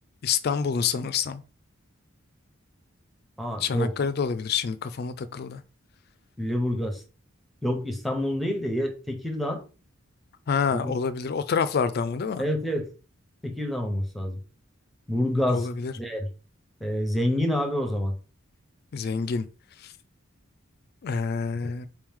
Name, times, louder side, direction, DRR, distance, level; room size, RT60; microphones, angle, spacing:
voice 1, 0.2-1.4 3.6-5.6 10.5-12.5 15.5-15.9 18.9-19.5 19.8-19.9 21.0-21.9, left 6 dB, 50° left, 0.3 m, -27 dB
voice 2, 3.4-3.9 6.4-7.0 7.6-9.6 10.7-11.0 12.4-12.9 13.4-14.4 15.1-15.7 16.0-16.3 16.8-18.1, left 1 dB, ahead, 0.9 m, -27 dB
4.8 x 3.0 x 3.7 m
head